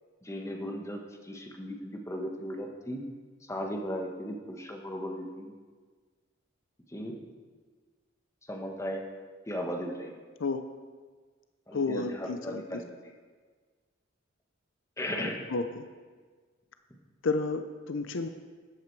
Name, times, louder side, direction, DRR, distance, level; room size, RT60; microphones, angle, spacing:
voice 1, 0.2-3.1 3.5-5.5 6.9-7.2 8.5-9.0 9.5-10.1 11.7-12.9 15.0-15.4, equal, 15° left, 2 dB, 1.2 m, -36 dB
voice 2, 11.7-12.8 15.5-15.8 17.2-18.3, left 3 dB, 70° left, 8 dB, 0.6 m, -31 dB
13.0 x 8.7 x 4.6 m, 1.5 s
head